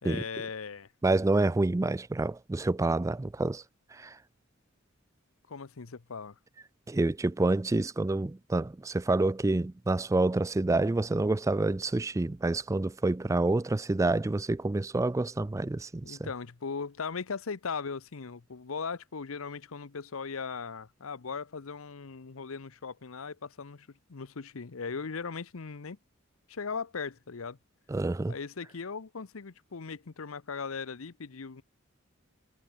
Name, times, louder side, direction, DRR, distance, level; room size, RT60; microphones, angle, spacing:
voice 1, 0.0-0.9 5.5-6.4 16.0-26.0 26.5-27.6 28.3-31.6, left 5 dB, 90° left, 0.8 m, -38 dB
voice 2, 1.0-3.6 3.9-4.2 6.9-16.3 27.9-28.3, right 2 dB, 15° right, 0.3 m, -28 dB
head